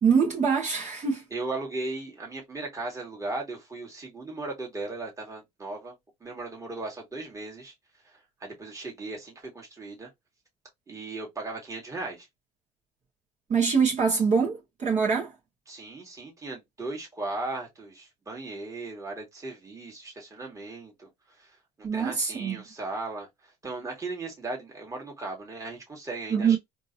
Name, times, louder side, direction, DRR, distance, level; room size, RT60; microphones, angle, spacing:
voice 1, 0.0-1.2 13.5-15.3 21.8-22.6 26.3-26.6, right 6 dB, 40° right, 1.6 m, -24 dB
voice 2, 1.3-6.0 6.2-7.7 8.4-10.1 10.9-12.3 15.7-21.1 21.4-21.5 21.8-26.6, right 2 dB, 20° right, 2.0 m, -37 dB
3.6 x 2.9 x 2.7 m
supercardioid pair, 90°, 18 cm